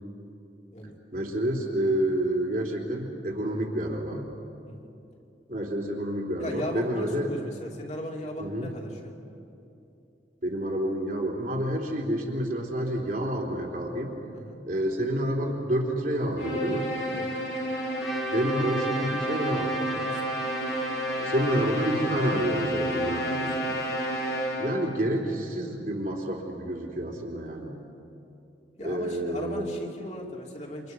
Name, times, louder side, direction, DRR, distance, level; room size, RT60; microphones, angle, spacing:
voice 1, 1.1-4.3 5.5-7.3 8.4-8.7 10.4-14.2 14.7-16.9 18.3-19.9 21.2-23.4 24.6-27.7 28.8-29.6, right 1 dB, 50° right, -1 dB, 3.7 m, -29 dB
voice 2, 6.4-9.2 14.3-14.6 17.1-17.3 19.9-20.5 23.0-23.8 27.0-27.3 28.8-30.9, left 1 dB, 40° left, -1 dB, 3.0 m, -38 dB
sound 1, 16.4-24.9, equal, 75° left, 4.3 m, -30 dB
Trumpet, 18.0-22.7, right 2 dB, ahead, 2.2 m, -37 dB
28.5 x 27.0 x 6.3 m, 2.8 s
head